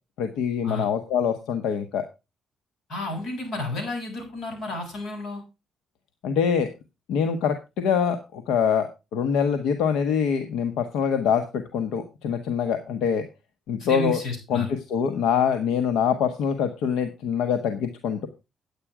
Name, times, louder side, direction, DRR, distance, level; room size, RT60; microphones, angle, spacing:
voice 1, 0.2-2.0 6.2-6.7 7.1-13.3 13.7-14.2 14.5-18.3, left 7 dB, 90° left, 8 dB, 1.2 m, -24 dB
voice 2, 2.9-5.4 13.8-14.7, left 1 dB, 60° left, 2 dB, 6.9 m, -32 dB
10.0 x 8.8 x 4.9 m, 0.27 s
cardioid pair, 90°, 0 cm